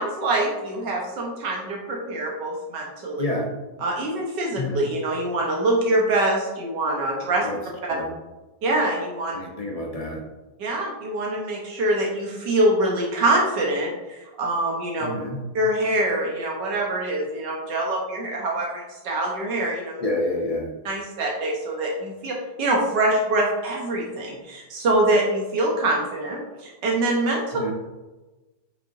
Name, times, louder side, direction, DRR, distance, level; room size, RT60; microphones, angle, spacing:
voice 1, 0.0-3.2 3.8-7.5 8.6-9.4 10.6-15.1 15.5-20.0 20.8-27.4, right 1 dB, 80° right, -2 dB, 1.7 m, -24 dB
voice 2, 3.2-3.6 4.5-4.9 7.4-8.2 9.3-10.2 15.0-15.4 20.0-20.7 27.5-27.7, left 1 dB, 35° left, -1 dB, 0.6 m, -29 dB
7.4 x 5.8 x 2.6 m, 1.1 s
omnidirectional pair, 1.9 m